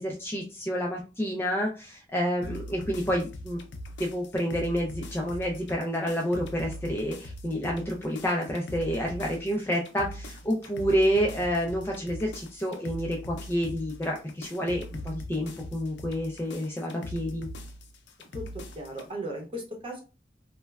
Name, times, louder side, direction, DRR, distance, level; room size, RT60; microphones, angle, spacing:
voice 1, 0.0-3.6 4.0-17.5, equal, 15° left, -1 dB, 0.3 m, -29 dB
sound 1, 2.4-19.1, left 1 dB, 85° left, 0.5 m, -41 dB
voice 2, 18.3-20.0, right 1 dB, 30° right, 0 dB, 0.8 m, -37 dB
3.0 x 2.1 x 2.3 m, 0.32 s
head